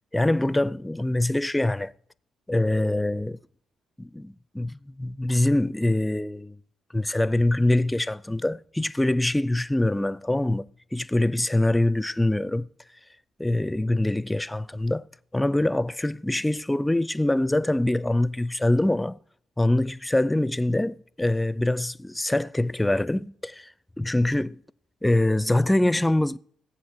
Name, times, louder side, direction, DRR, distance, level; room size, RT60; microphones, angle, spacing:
voice 1, 0.1-1.9 2.5-3.4 4.0-6.6 6.9-12.7 13.4-15.0 15.3-19.2 19.6-23.7 24.0-24.6 25.0-26.4, left 1 dB, 10° left, 0.5 m, -24 dB
17.5 x 7.7 x 6.6 m
supercardioid pair, 70°, 0 cm